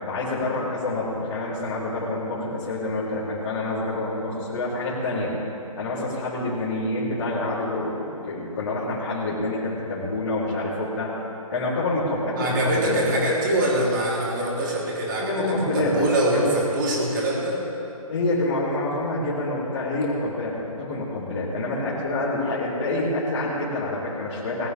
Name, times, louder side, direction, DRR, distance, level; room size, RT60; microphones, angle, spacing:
voice 1, 0.0-5.3 5.7-11.1 11.5-13.0 15.2-16.5 17.4-17.6 18.1-24.7, left 2 dB, 35° left, -12 dB, 4.2 m, -27 dB
voice 2, 12.4-15.4 15.7-17.6, right 1 dB, 35° right, -5 dB, 4.1 m, -24 dB
21.5 x 12.5 x 3.8 m, 2.8 s
figure-of-eight pair, 150°, 19 cm